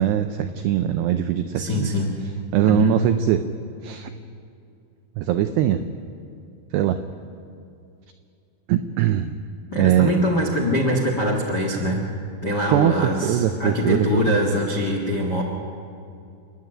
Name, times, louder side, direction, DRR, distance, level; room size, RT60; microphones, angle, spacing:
voice 1, 0.0-1.9 2.5-3.4 3.8-4.1 5.2-5.8 6.7-7.0 8.7-9.3 9.8-10.1 12.7-13.0 13.2-14.4, right 11 dB, 85° right, 8 dB, 2.4 m, -21 dB
voice 2, 1.5-2.1 2.6-2.9 9.7-12.0 12.4-15.4, left 1 dB, 70° left, 0 dB, 0.9 m, -23 dB
29.0 x 11.0 x 8.8 m, 2.5 s
omnidirectional pair, 5.7 m